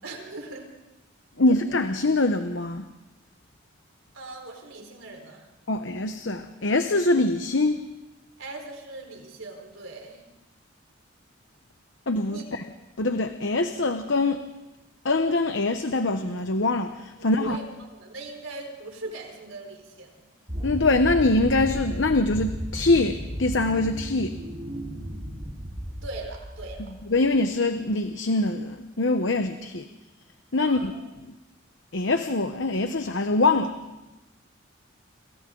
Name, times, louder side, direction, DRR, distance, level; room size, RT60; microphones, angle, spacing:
voice 1, 0.0-0.7 1.4-1.5 4.1-5.5 8.4-10.2 12.3-12.6 17.3-20.2 26.0-26.9 30.6-30.9, right 2 dB, 90° right, 2 dB, 4.5 m, -40 dB
voice 2, 1.4-2.8 5.7-7.8 12.1-12.6 13.0-14.4 15.0-17.6 20.6-24.3 27.1-29.8 30.5-30.9 31.9-33.8, left 2 dB, 65° left, 7 dB, 1.0 m, -24 dB
sound 1, 20.5-27.3, equal, 35° right, 2.7 m, -34 dB
28.0 x 27.5 x 3.9 m, 1.0 s
head